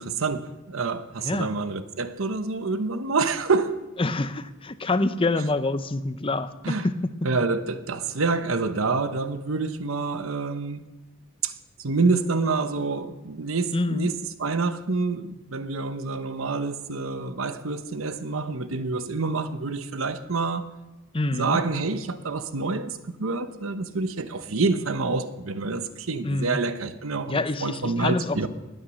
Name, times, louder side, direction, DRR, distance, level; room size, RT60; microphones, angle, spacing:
voice 1, 0.0-3.8 6.6-6.9 7.2-10.9 11.4-14.1 14.4-20.7 21.3-28.5, right 3 dB, 90° right, 1.0 m, -27 dB
voice 2, 1.2-1.5 4.0-6.9 13.7-14.1 21.1-21.6 26.2-26.6 27.3-28.4, left 2 dB, 25° left, 0.7 m, -26 dB
19.5 x 9.0 x 6.4 m
head